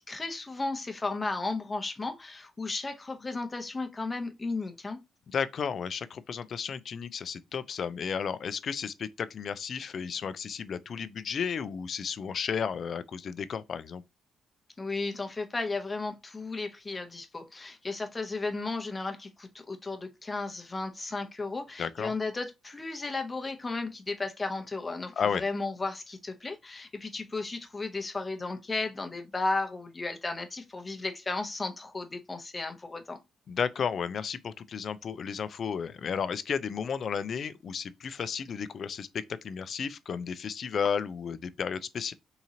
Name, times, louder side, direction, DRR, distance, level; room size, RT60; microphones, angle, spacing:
voice 1, 0.0-5.0 14.8-33.2, left 3 dB, 25° left, 0.7 m, -34 dB
voice 2, 5.3-14.0 21.8-22.1 25.2-25.4 33.5-42.1, left 6 dB, 55° left, 0.4 m, -33 dB
3.8 x 2.9 x 2.7 m
cardioid pair, 90°, 0 cm